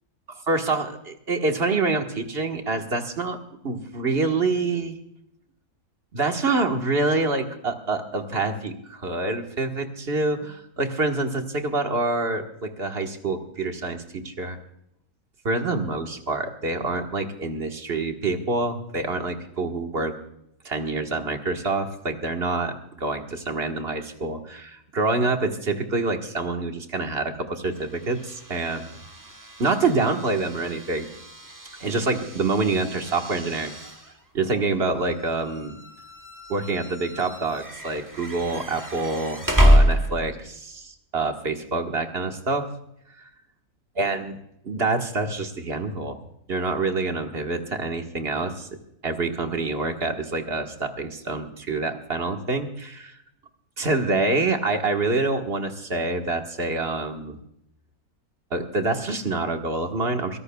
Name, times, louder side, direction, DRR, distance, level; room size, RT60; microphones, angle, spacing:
voice 1, 0.5-3.4 3.6-5.0 6.1-14.6 15.4-20.2 20.7-28.9 29.6-31.1 31.8-33.7 34.3-35.8 36.5-42.7 43.2-43.3 44.0-44.4 44.6-46.2 46.5-48.7 49.0-53.2 53.8-57.4 58.5-60.4, right 3 dB, 40° right, 4 dB, 1.7 m, -26 dB
sound 1, 27.7-40.5, equal, 15° right, 1.2 m, -27 dB
23.0 x 17.5 x 2.3 m, 0.75 s
omnidirectional pair, 1.6 m